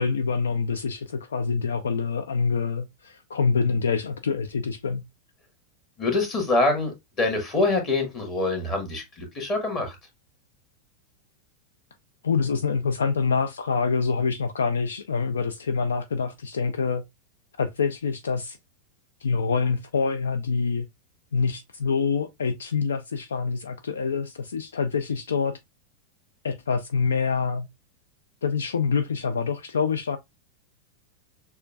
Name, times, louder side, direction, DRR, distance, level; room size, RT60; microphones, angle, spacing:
voice 1, 0.0-5.0 12.2-17.0 17.6-18.6 19.2-20.9 21.3-25.6 26.4-27.7 28.4-30.2, left 5 dB, 70° left, 0.3 m, -26 dB
voice 2, 6.0-10.0, left 2 dB, 30° left, 1.6 m, -25 dB
6.5 x 2.3 x 2.3 m
figure-of-eight pair, 90°, 0 cm